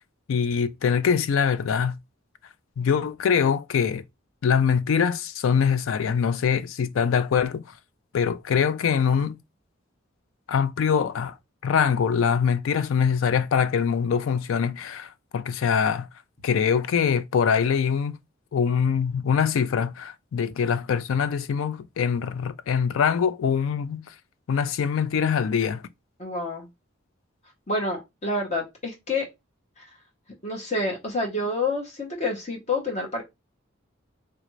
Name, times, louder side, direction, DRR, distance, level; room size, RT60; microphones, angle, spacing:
voice 1, 0.3-2.0 2.8-4.0 4.4-7.6 8.1-9.4 10.5-11.4 11.6-16.1 16.4-18.2 18.5-24.0 24.5-25.8, left 7 dB, 75° left, 0.4 m, -23 dB
voice 2, 26.2-26.7 27.7-29.2 29.8-29.9 30.4-33.2, left 2 dB, 35° left, 0.9 m, -28 dB
3.4 x 2.5 x 3.0 m
head